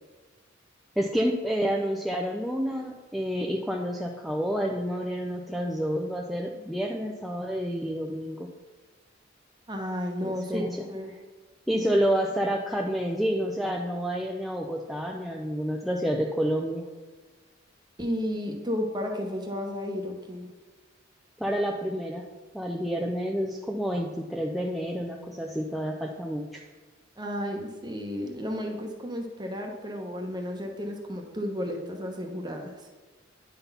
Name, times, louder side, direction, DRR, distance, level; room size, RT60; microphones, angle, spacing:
voice 1, 1.0-8.5 10.2-10.8 11.7-16.8 21.4-22.2 22.5-26.6, equal, ahead, 0 dB, 0.4 m, -29 dB
voice 2, 9.7-11.1 11.7-12.0 18.0-20.5 27.2-32.8, equal, 20° right, 3 dB, 1.0 m, -33 dB
9.5 x 4.0 x 5.5 m, 1.3 s
head